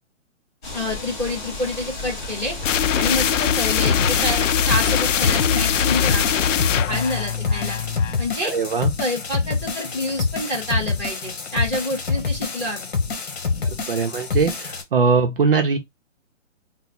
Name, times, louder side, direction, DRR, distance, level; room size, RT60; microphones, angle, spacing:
sound 1, 0.6-6.5, left 2 dB, 40° left, 2.5 m, -33 dB
voice 1, 0.7-2.5 3.0-6.5 6.9-7.8 8.2-8.6 9.0-12.9, left 1 dB, 5° left, 0.8 m, -27 dB
sound 2, 2.6-8.3, left 8 dB, 75° left, 0.5 m, -22 dB
sound 3, 3.8-14.8, left 4 dB, 55° left, 1.3 m, -26 dB
voice 2, 8.4-8.9 13.6-15.8, right 5 dB, 50° right, 0.5 m, -21 dB
4.0 x 2.0 x 4.1 m
hypercardioid pair, 170°, 37 cm